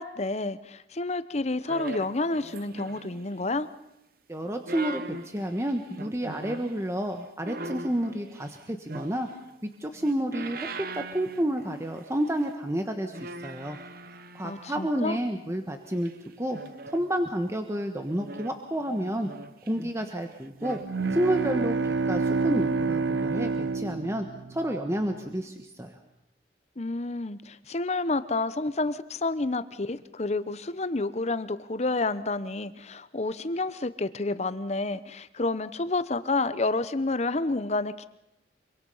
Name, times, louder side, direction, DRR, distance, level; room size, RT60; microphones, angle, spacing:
voice 1, 0.0-3.7 14.4-15.2 26.8-38.1, left 2 dB, 40° left, 14 dB, 0.8 m, -29 dB
sound 1, 1.7-3.4 4.4-6.7 7.4-9.5 9.9-12.0 12.3-12.5 13.1-15.2 16.1-17.3 18.1-20.1 20.4-20.9 21.4-21.5, right 3 dB, 55° right, 1.1 m, -41 dB
voice 2, 4.3-9.3 9.6-13.8 14.3-16.1 16.4-16.6 16.9-19.3 19.7-20.8 21.1-26.0, right 1 dB, 15° right, 5 dB, 1.2 m, -30 dB
sound 2, 20.8-24.9, right 4 dB, 80° right, 0.7 m, -28 dB
25.5 x 24.0 x 5.6 m, 0.86 s
head